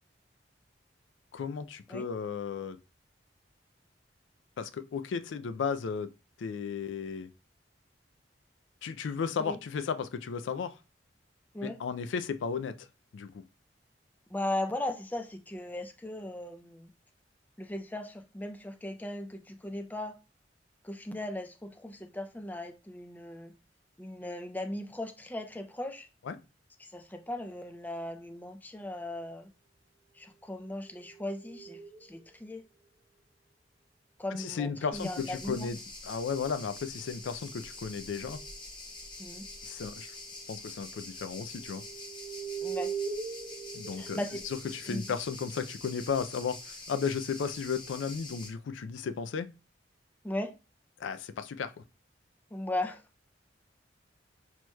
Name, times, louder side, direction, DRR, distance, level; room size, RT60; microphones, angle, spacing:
voice 1, 1.3-2.8 4.6-6.1 6.4-7.3 8.8-10.8 11.6-12.9 13.1-13.4 26.2-26.4 34.3-35.8 36.0-38.4 39.6-40.1 40.5-41.8 43.7-49.5 51.0-51.8, left 6 dB, 90° left, 0.4 m, -34 dB
voice 2, 14.3-16.9 17.6-20.2 20.8-23.5 24.0-26.1 26.8-29.5 30.2-32.6 34.2-35.7 39.2-39.5 42.6-42.9 43.9-44.4 44.9-45.0 50.2-50.5 52.5-53.0, left 1 dB, 10° left, 0.4 m, -37 dB
sound 1, 30.6-32.5 34.8-35.7 36.3-38.6 39.4-39.7 40.0-40.5 41.1-45.9, right 6 dB, 60° right, 1.0 m, -43 dB
sound 2, 34.9-48.5, left 2 dB, 25° left, 0.8 m, -45 dB
6.1 x 2.9 x 2.2 m
head